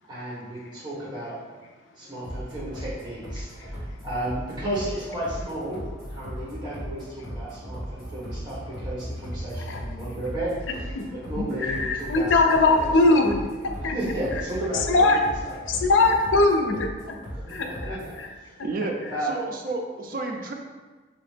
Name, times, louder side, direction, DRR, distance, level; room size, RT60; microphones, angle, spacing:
voice 1, 0.1-1.4 2.0-5.8 6.1-10.5 11.1-13.2 13.7-15.2 15.4-15.6 17.3-18.6 19.1-19.3, right 1 dB, 25° right, -7 dB, 1.1 m, -33 dB
sound 1, 2.2-18.2, equal, ahead, 1.4 m, -37 dB
voice 2, 10.7-11.0 11.4-14.0 14.9-15.2 15.7-16.9 17.5-18.3, left 3 dB, 85° left, 4 dB, 0.4 m, -21 dB
voice 3, 18.6-19.0 19.2-20.5, right 3 dB, 45° right, 2 dB, 0.4 m, -31 dB
3.2 x 2.9 x 3.2 m, 1.3 s
head